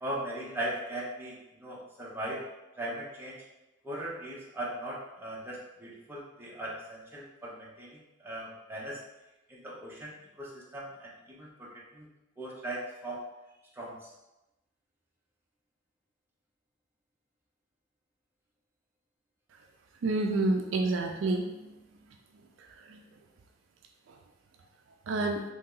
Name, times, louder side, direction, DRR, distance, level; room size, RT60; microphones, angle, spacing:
voice 1, 0.0-2.4 2.8-3.4 3.8-9.0 9.5-12.1 12.4-13.2 13.7-14.1, right 1 dB, 10° right, -5 dB, 0.6 m, -39 dB
voice 2, 20.0-21.7 22.9-23.0 25.1-25.4, right 2 dB, 65° right, 3 dB, 0.3 m, -28 dB
2.8 x 2.8 x 3.7 m, 0.99 s
head